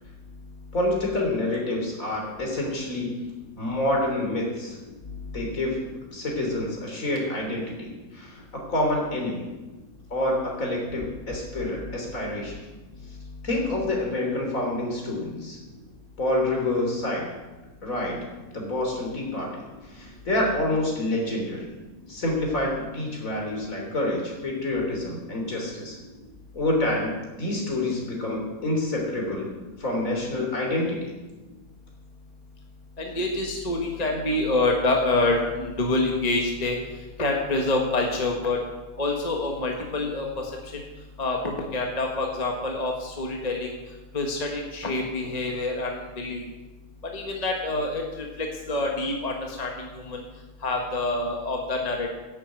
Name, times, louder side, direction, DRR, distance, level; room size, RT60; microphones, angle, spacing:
voice 1, 0.7-3.1 3.6-4.8 5.3-5.8 6.1-9.5 10.1-12.6 13.4-15.6 16.2-17.3 17.8-18.2 18.5-21.7 22.1-26.0 26.5-29.5 29.8-31.1, left 1 dB, 65° left, 0 dB, 3.7 m, -27 dB
voice 2, 33.0-36.8 37.2-38.6 39.0-40.3 40.7-40.8 41.2-41.4 41.7-43.7 44.1-46.4 47.1-50.2 50.6-52.1, left 2 dB, 30° left, 1 dB, 1.6 m, -26 dB
10.5 x 8.7 x 8.2 m, 1.1 s
omnidirectional pair, 1.5 m